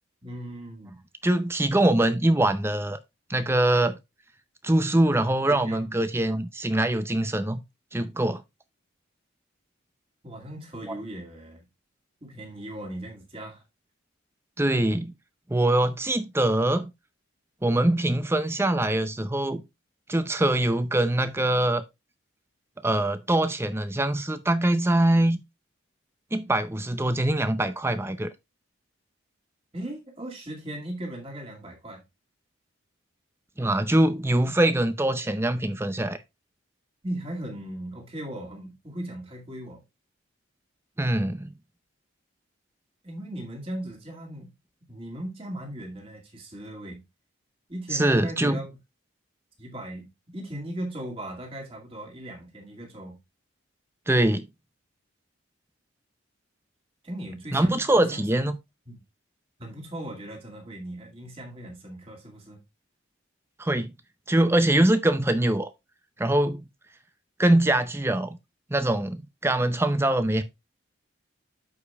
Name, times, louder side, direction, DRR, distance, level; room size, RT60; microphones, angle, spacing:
voice 1, 0.2-1.0 5.5-5.8 10.2-11.6 12.2-13.6 29.7-32.0 37.0-39.8 43.0-44.5 44.9-47.0 47.7-48.7 49.6-53.2 57.0-58.2 58.9-59.0 59.6-62.6, right 1 dB, 25° right, 2.2 m, -38 dB
voice 2, 1.2-3.0 3.3-4.0 4.6-7.6 7.9-8.4 14.6-15.1 15.5-16.9 17.6-19.6 20.1-21.8 22.8-25.4 26.3-28.3 33.6-36.2 41.0-41.5 47.9-48.6 54.1-54.5 57.5-58.6 63.6-63.9 64.3-65.7 66.2-66.6 67.4-68.3 68.7-70.4, right 1 dB, 10° right, 0.5 m, -23 dB
13.0 x 5.2 x 2.4 m
head